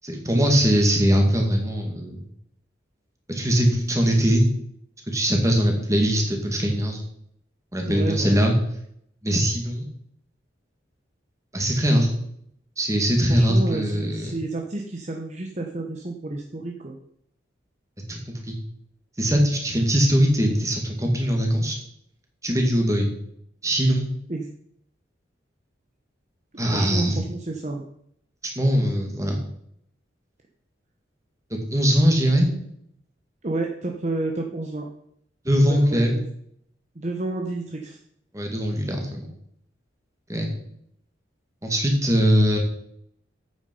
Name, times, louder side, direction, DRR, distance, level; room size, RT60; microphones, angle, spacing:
voice 1, 0.0-2.2 3.3-4.5 5.1-7.0 7.7-8.5 9.2-9.9 11.5-12.1 12.8-14.4 18.1-18.2 18.4-18.5 19.2-21.8 22.4-23.1 23.6-24.1 26.6-27.2 28.6-29.4 31.5-32.5 35.4-36.2 38.3-39.3 40.3-40.5 41.6-42.6, equal, 15° right, 2 dB, 2.3 m, -21 dB
voice 2, 7.9-8.4 13.3-17.0 24.3-24.5 26.5-27.8 33.4-34.9 35.7-36.2 36.9-38.0, right 2 dB, 40° right, 1 dB, 1.0 m, -30 dB
9.1 x 8.6 x 5.5 m, 0.70 s
head